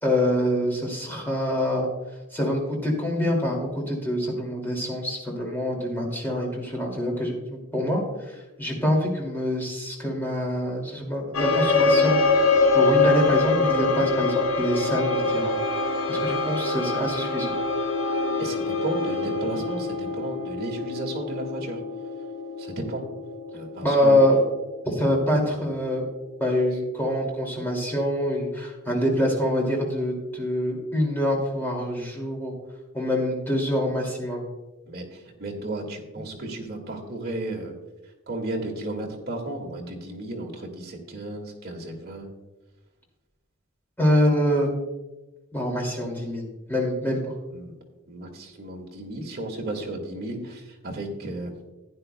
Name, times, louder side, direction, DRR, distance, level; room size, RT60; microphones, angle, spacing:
voice 1, 0.0-1.9 2.3-12.2 12.7-15.5 16.1-17.5 23.8-24.4 24.8-26.1 26.4-32.5 32.9-34.4 44.0-44.7 45.5-47.3, equal, 10° left, -1 dB, 2.4 m, -25 dB
sound 1, 11.3-26.1, left 3 dB, 70° left, 1.2 m, -25 dB
voice 2, 18.4-21.8 22.6-23.0 23.5-24.2 24.9-25.0 34.9-37.8 38.3-42.3 47.5-47.7 48.1-51.5, right 1 dB, 45° right, 0 dB, 1.9 m, -34 dB
15.0 x 10.0 x 2.2 m, 1.1 s
head